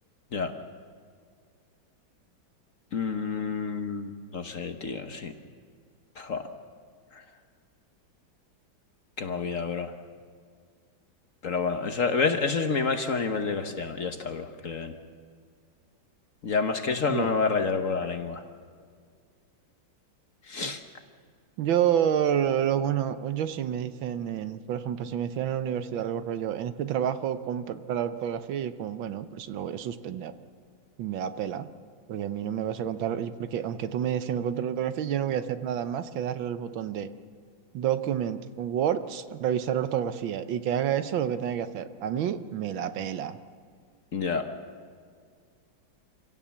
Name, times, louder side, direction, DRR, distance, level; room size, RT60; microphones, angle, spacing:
voice 1, 2.9-5.3 6.2-6.4 9.2-9.9 11.4-14.9 16.4-18.4 20.5-20.8 44.1-44.5, left 5 dB, 50° left, 7 dB, 1.2 m, -28 dB
voice 2, 21.6-30.3 31.0-31.7 32.1-37.1 37.7-43.4, right 9 dB, 75° right, 11 dB, 1.6 m, -29 dB
26.5 x 17.0 x 7.1 m, 2.1 s
omnidirectional pair, 2.2 m